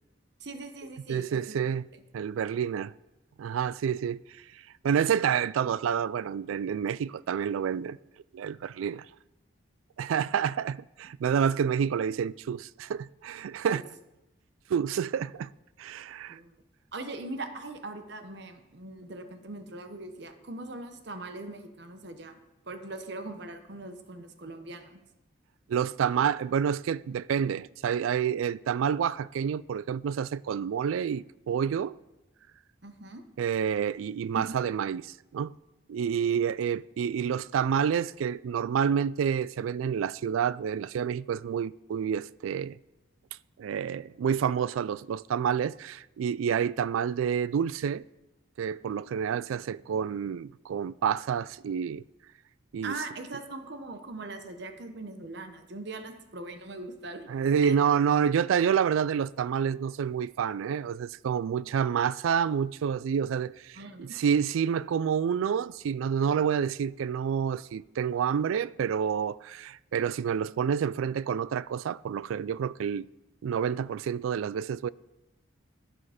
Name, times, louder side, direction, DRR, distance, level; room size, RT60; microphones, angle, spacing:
voice 1, 0.4-1.6 1.9-2.0 13.7-13.8 16.3-16.6 16.9-22.4 22.7-25.0 32.8-33.2 34.4-34.6 52.8-57.3 57.6-57.7 63.7-64.2, right 2 dB, 55° right, 0.9 m, -41 dB
voice 2, 1.1-1.9 2.1-2.9 3.4-4.2 4.8-8.0 8.3-9.1 10.0-13.8 14.7-15.5 15.8-16.4 25.7-31.9 33.4-35.5 35.9-42.8 43.6-48.0 48.6-52.0 52.7-52.9 57.3-73.1 73.4-74.9, right 7 dB, 80° right, 0.3 m, -28 dB
11.0 x 8.7 x 5.0 m
head